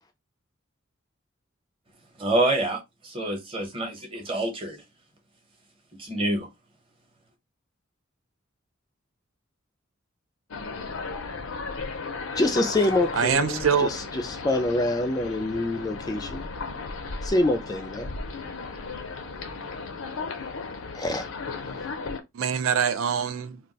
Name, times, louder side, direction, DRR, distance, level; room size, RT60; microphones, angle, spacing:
voice 1, 2.2-4.8 6.0-6.5, right 1 dB, 25° right, 0.8 m, -27 dB
sound 1, 10.5-22.2, left 4 dB, 85° left, 0.6 m, -35 dB
voice 2, 12.4-16.5 17.2-18.1 20.9-21.3, left 2 dB, 20° left, 0.3 m, -26 dB
voice 3, 13.1-14.0 22.3-23.6, right 6 dB, 90° right, 0.4 m, -24 dB
2.3 x 2.2 x 3.9 m
head